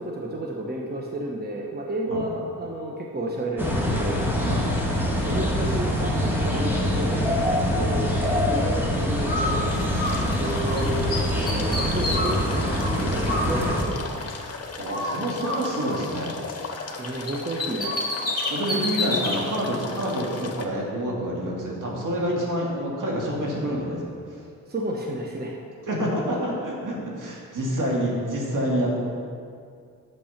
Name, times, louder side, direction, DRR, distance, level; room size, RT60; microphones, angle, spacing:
voice 1, 0.0-4.3 5.3-7.2 7.5-8.2 8.5-9.7 10.4-12.7 13.0-14.0 17.0-17.9 24.7-25.5, right 1 dB, 30° right, -1 dB, 1.1 m, -31 dB
sound 1, 3.6-13.8, equal, 5° right, 1.7 m, -24 dB
Bird, 9.2-10.8 11.1-14.5 14.9-17.0 17.3-19.4, left 2 dB, 25° left, 2.7 m, -30 dB
sound 2, 9.7-20.6, left 4 dB, 45° left, 1.1 m, -37 dB
voice 2, 14.8-16.3 18.5-24.0 25.9-29.0, equal, 65° right, -3 dB, 2.5 m, -27 dB
8.8 x 7.1 x 5.8 m, 2.3 s
cardioid pair, 75°, 34 cm